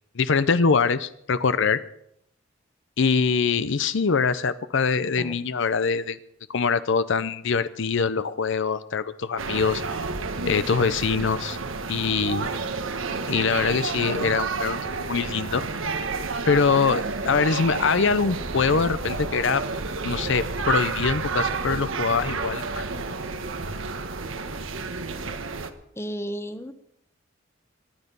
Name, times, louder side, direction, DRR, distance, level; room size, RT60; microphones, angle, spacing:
voice 1, 0.2-1.8 3.0-6.2 6.5-9.8 10.5-11.6 11.9-12.5 13.3-15.6 16.4-19.6 20.0-23.0, left 5 dB, 70° left, 13 dB, 0.6 m, -23 dB
sound 1, 9.4-25.7, right 4 dB, 85° right, 1.3 m, -30 dB
voice 2, 26.0-26.7, equal, 15° left, 10 dB, 1.0 m, -33 dB
23.5 x 10.0 x 5.5 m, 0.74 s
head